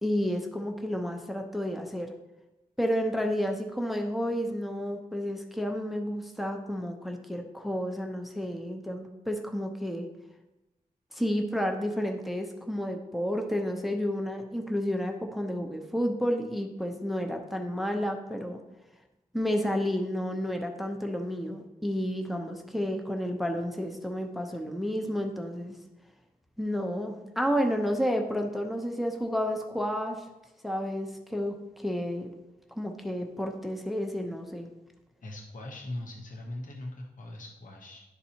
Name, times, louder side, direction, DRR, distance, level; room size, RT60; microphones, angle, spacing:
voice 1, 0.0-2.1 2.8-10.1 11.1-18.6 19.3-25.8 26.6-30.2 30.6-32.3 32.7-34.7, equal, ahead, 3 dB, 0.7 m, -31 dB
voice 2, 35.2-38.0, left 1 dB, 60° left, 1 dB, 0.9 m, -40 dB
11.5 x 4.0 x 2.8 m, 1.0 s
cardioid pair, 60°, 15 cm